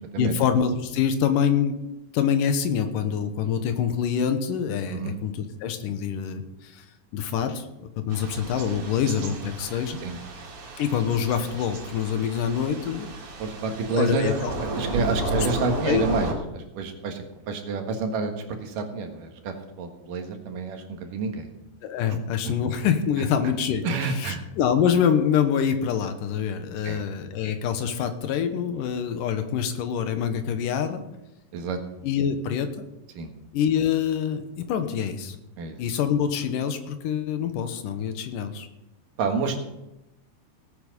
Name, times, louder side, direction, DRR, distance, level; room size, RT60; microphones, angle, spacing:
voice 1, 0.2-1.8 2.1-6.9 7.1-10.0 10.8-13.1 13.9-14.5 15.2-15.5 15.8-16.1 21.8-31.0 32.0-32.9 33.5-35.4 35.8-38.7, left 8 dB, 75° left, 8 dB, 2.6 m, -25 dB
Thunder / Rain, 8.1-16.3, right 2 dB, 90° right, 4.3 m, -33 dB
voice 2, 13.4-21.5 22.1-22.2 22.4-22.5 23.8-24.4 26.8-27.1 31.5-31.8 33.2-33.3 35.6-35.8 39.2-39.6, right 4 dB, 70° right, 4 dB, 3.1 m, -29 dB
17.5 x 8.6 x 5.3 m, 0.91 s
omnidirectional pair, 4.0 m